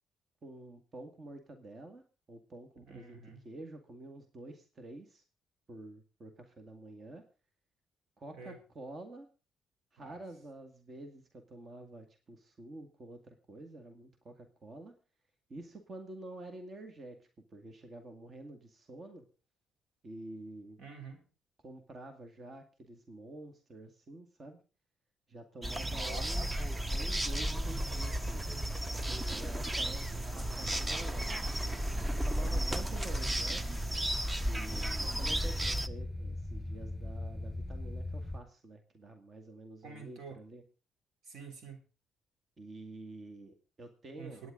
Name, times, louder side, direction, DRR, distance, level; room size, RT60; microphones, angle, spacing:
voice 1, 0.4-2.0 2.3-5.2 5.7-7.2 8.2-9.3 9.9-14.9 15.5-19.3 20.0-20.8 21.6-24.6 25.3-26.6 26.9-28.4 29.3-31.3 32.0-34.0 34.4-40.6 42.6-44.4, right 2 dB, 40° right, 6 dB, 2.0 m, -48 dB
voice 2, 2.9-3.4 8.3-8.6 10.0-10.2 20.8-21.2 25.9-26.5 32.4-32.7 39.8-40.4 41.2-41.8 44.2-44.5, right 4 dB, 75° right, 6 dB, 3.6 m, -48 dB
sound 1, 25.6-35.9, right 1 dB, 20° right, 0.8 m, -34 dB
sound 2, 33.3-38.4, left 2 dB, 5° left, 5.6 m, -43 dB
27.5 x 9.5 x 3.9 m, 0.33 s
cardioid pair, 90°, 0 cm